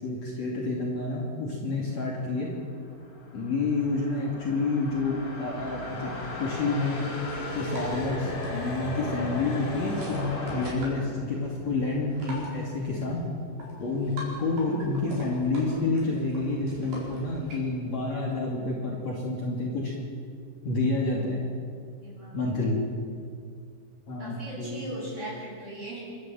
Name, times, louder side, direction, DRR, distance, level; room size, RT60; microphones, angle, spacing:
voice 1, 0.0-2.5 3.3-6.1 6.4-7.1 7.5-13.2 13.8-19.9 20.6-21.4 22.3-22.8 24.1-24.9, left 3 dB, 45° left, -3 dB, 3.5 m, -29 dB
sound 1, 2.8-10.7, left 2 dB, 30° left, 3.4 m, -36 dB
sound 2, 7.2-17.6, equal, 55° right, 6.1 m, -43 dB
voice 2, 22.0-22.4 24.2-26.0, right 1 dB, 15° right, -5 dB, 8.0 m, -38 dB
27.0 x 12.5 x 7.8 m, 2.3 s
omnidirectional pair, 4.7 m